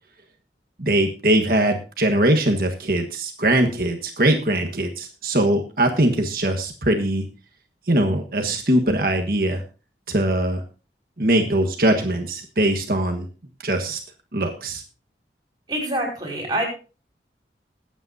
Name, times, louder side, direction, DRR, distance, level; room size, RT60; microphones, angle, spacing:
voice 1, 0.8-7.3 7.9-9.6 10.1-10.6 11.2-13.3 13.6-14.0 14.3-14.8, right 1 dB, 55° right, 4 dB, 1.4 m, -21 dB
voice 2, 15.7-16.6, right 1 dB, 25° right, -2 dB, 5.3 m, -25 dB
21.0 x 8.9 x 2.7 m, 0.34 s
head